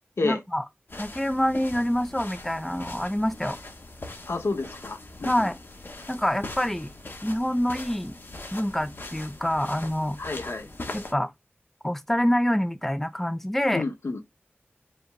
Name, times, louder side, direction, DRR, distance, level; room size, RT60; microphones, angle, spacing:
voice 1, 0.2-0.6 1.0-3.6 5.2-5.6 6.1-6.9 7.2-8.1 8.5-10.2 10.9-11.3 11.8-13.8, equal, 5° left, 0.5 m, -26 dB
sound 1, 0.9-11.1, left 2 dB, 55° left, 1.2 m, -41 dB
voice 2, 4.3-5.3 10.2-10.7 13.7-14.2, left 3 dB, 80° left, 1.0 m, -29 dB
5.2 x 2.1 x 3.8 m
wide cardioid pair, 60°, 4 cm